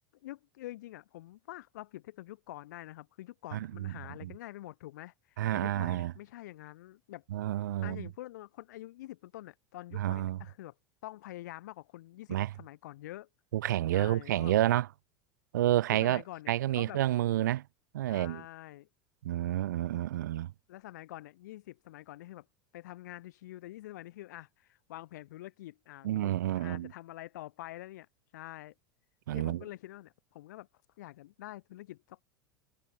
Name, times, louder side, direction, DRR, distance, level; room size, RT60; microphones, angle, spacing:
voice 1, 0.2-7.2 7.8-10.7 11.0-13.3 13.9-14.6 15.9-17.0 18.1-18.9 20.7-22.5 22.7-28.1 28.3-28.7 29.3-30.7 31.0-32.2, left 16 dB, 70° left, 6.4 m, -46 dB
voice 2, 3.5-3.9 4.2-4.3 5.4-6.1 7.3-8.1 10.0-10.4 12.3-12.5 13.5-14.9 15.5-16.2 16.5-17.6 17.9-18.4 19.2-20.5 26.0-26.9 29.3-29.6, right 13 dB, 75° right, 0.5 m, -29 dB
hypercardioid pair, 85°, 10 cm